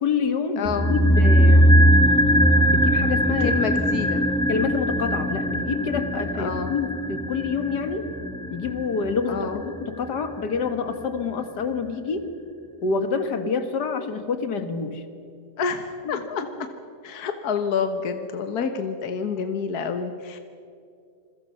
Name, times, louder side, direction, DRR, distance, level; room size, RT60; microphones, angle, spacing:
voice 1, 0.0-1.8 2.7-3.5 4.5-8.1 8.5-9.5 9.9-12.3 12.8-15.0 16.0-16.5, left 5 dB, 85° left, 8 dB, 2.2 m, -27 dB
voice 2, 0.6-0.9 3.4-4.3 6.4-6.7 9.3-9.6 15.6-16.4 17.0-20.4, left 6 dB, 70° left, 7 dB, 1.7 m, -28 dB
sound 1, 0.6-10.9 11.2-11.3, equal, 5° left, 0.7 m, -20 dB
28.0 x 22.0 x 5.6 m, 2.5 s
omnidirectional pair, 1.7 m